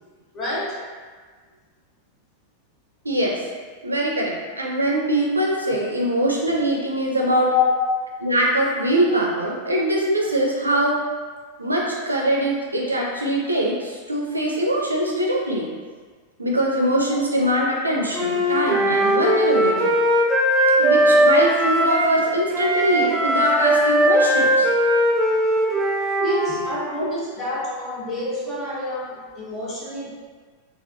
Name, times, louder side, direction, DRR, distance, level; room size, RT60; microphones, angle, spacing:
voice 1, 0.3-0.8 7.5-7.7 26.2-30.1, left 3 dB, 25° left, -6 dB, 1.0 m, -27 dB
voice 2, 3.8-7.5 8.2-11.1 11.6-15.7 16.4-19.9 20.8-24.7, right 1 dB, 80° right, -2 dB, 0.4 m, -22 dB
Wind instrument woodwind instrument, 18.1-22.2 22.5-26.8, right 1 dB, 10° right, 0.5 m, -19 dB
3.3 x 2.5 x 2.5 m, 1.5 s
figure-of-eight pair, 90°, 0 cm